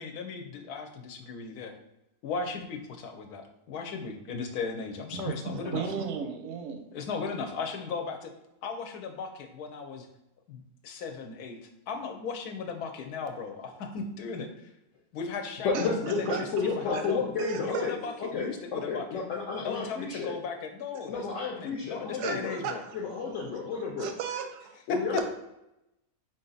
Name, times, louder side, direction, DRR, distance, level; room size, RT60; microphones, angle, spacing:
voice 1, 0.0-1.7 2.2-5.8 6.9-8.3 8.6-10.1 10.5-11.6 11.9-14.5 15.1-17.3 17.6-19.2 19.6-22.8 24.9-25.2, left 5 dB, 80° left, 5 dB, 1.1 m, -36 dB
voice 2, 5.1-6.8 15.7-17.0 17.4-18.1 22.2-22.8 23.4-23.6 24.0-24.7, right 6 dB, 65° right, 5 dB, 0.7 m, -35 dB
voice 3, 15.6-17.9 18.2-20.3 21.1-22.6 22.9-24.1 24.9-25.2, left 5 dB, 65° left, -2 dB, 0.8 m, -31 dB
4.3 x 2.6 x 3.9 m, 0.89 s
omnidirectional pair, 1.6 m